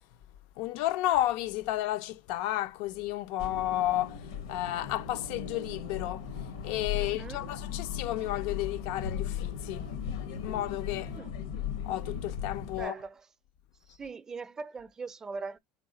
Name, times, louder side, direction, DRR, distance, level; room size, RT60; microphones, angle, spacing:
voice 1, 0.6-6.3 6.6-9.9 10.4-11.1 11.8-12.9, left 14 dB, 65° left, 0.3 m, -32 dB
sound 1, 3.4-12.8, left 8 dB, 80° left, 0.7 m, -37 dB
voice 2, 6.9-7.5 11.1-11.3 12.8-13.3 13.9-15.6, right 4 dB, 20° right, 0.5 m, -41 dB
3.4 x 3.1 x 3.7 m
supercardioid pair, 105°, 3 cm